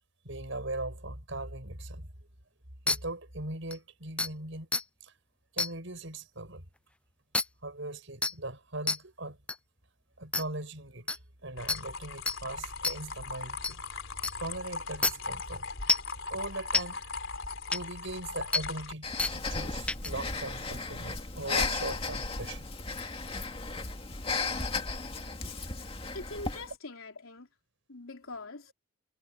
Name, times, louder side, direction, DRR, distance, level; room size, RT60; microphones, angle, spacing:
voice 1, 0.2-2.1 2.9-4.7 5.0-5.1 5.5-6.6 7.6-9.4 10.2-13.8 14.4-15.7 16.3-17.1 17.7-22.7, right 2 dB, 65° right, 6.1 m, -40 dB
sound 1, 2.9-3.0 3.7-3.8 4.2-4.3 4.7-4.8 5.6-5.7 7.3-7.4 8.2-8.3 8.9-9.0 9.5-9.6 10.3-10.4 11.1-11.2 11.7-11.8 12.3-12.4 12.8-13.0 13.6-13.7 14.2-14.3 15.0-15.1 15.9-16.1 16.7-16.8 17.7-17.8 18.5-18.6 19.2-19.3 19.9-20.1, left 3 dB, 5° left, 0.3 m, -27 dB
sound 2, 11.6-18.9, left 4 dB, 70° left, 3.8 m, -39 dB
Breathing, 19.0-26.7, left 3 dB, 25° left, 2.3 m, -35 dB
voice 2, 26.1-27.5 27.9-28.7, left 2 dB, 90° left, 3.6 m, -43 dB
head